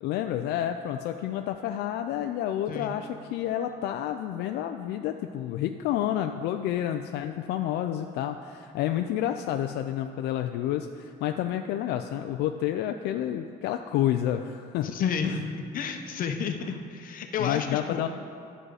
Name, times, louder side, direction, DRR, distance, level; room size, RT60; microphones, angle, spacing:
voice 1, 0.0-14.9 15.2-15.4 17.4-18.1, left 11 dB, 80° left, 6 dB, 0.4 m, -29 dB
voice 2, 14.8-15.5 15.7-18.1, left 6 dB, 55° left, 6 dB, 0.8 m, -31 dB
9.9 x 6.4 x 4.8 m, 2.3 s
cardioid pair, 110°, 17 cm